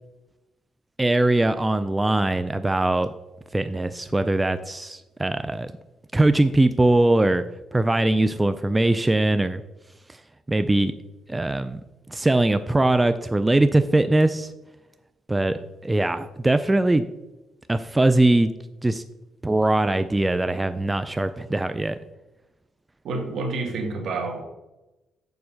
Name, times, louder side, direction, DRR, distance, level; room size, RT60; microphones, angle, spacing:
voice 1, 1.0-3.1 3.5-5.7 6.1-7.4 7.7-9.6 10.5-10.9 11.3-11.8 12.1-14.5 15.3-17.0 17.7-18.5 18.8-19.0 19.4-22.0, right 2 dB, 15° right, 11 dB, 0.4 m, -21 dB
voice 2, 23.0-24.4, right 3 dB, 70° right, 4 dB, 1.8 m, -28 dB
7.1 x 5.3 x 6.3 m, 1.0 s
cardioid pair, 90°, 0 cm